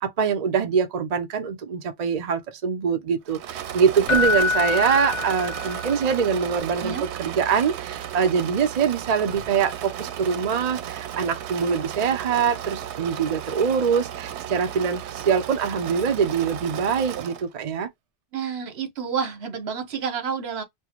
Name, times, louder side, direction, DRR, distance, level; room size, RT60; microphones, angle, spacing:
voice 1, 0.0-17.9, right 6 dB, 45° right, 0.6 m, -24 dB
Engine / Mechanisms, 3.3-17.5, right 10 dB, 90° right, 0.9 m, -34 dB
Keyboard (musical), 4.1-6.0 9.3-9.4, left 5 dB, 50° left, 0.7 m, -25 dB
voice 2, 18.3-20.6, right 6 dB, 70° right, 1.1 m, -29 dB
4.4 x 2.1 x 2.9 m
omnidirectional pair, 1.1 m